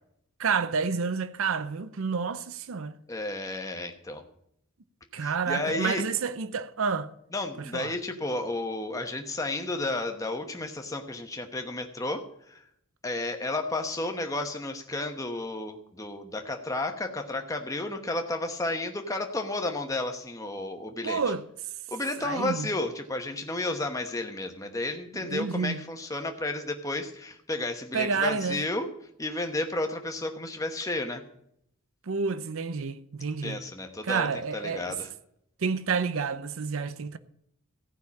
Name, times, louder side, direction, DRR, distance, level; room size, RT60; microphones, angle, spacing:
voice 1, 0.4-2.9 5.1-7.1 7.6-7.9 21.0-21.4 22.2-22.7 25.1-25.8 27.9-28.6 32.1-33.6 34.0-35.0 35.6-37.2, right 5 dB, 70° right, 0.6 m, -29 dB
voice 2, 3.1-4.2 5.2-6.0 7.3-12.2 12.5-12.6 13.0-21.2 21.9-28.9 29.2-31.2 33.4-34.3 34.5-35.1, left 2 dB, 15° left, 1.0 m, -32 dB
14.5 x 5.8 x 8.4 m
head